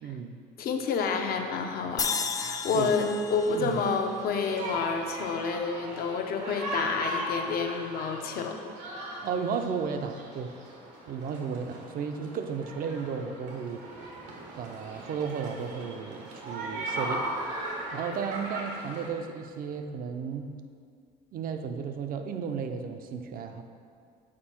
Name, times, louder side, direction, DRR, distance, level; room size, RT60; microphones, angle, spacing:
voice 1, 0.0-0.4 2.7-3.0 3.5-3.8 9.2-10.6 11.1-13.9 14.6-17.3 17.9-20.6 21.3-23.6, right 6 dB, 55° right, 7 dB, 0.6 m, -34 dB
voice 2, 0.6-2.1 2.4-8.6, left 5 dB, 65° left, 4 dB, 0.7 m, -29 dB
sound 1, 2.0-5.3, left 5 dB, 20° left, 0.3 m, -34 dB
sound 2, 3.4-19.1, right 1 dB, 90° right, 1.4 m, -38 dB
7.5 x 4.4 x 4.4 m, 2.2 s
cardioid pair, 110°, 17 cm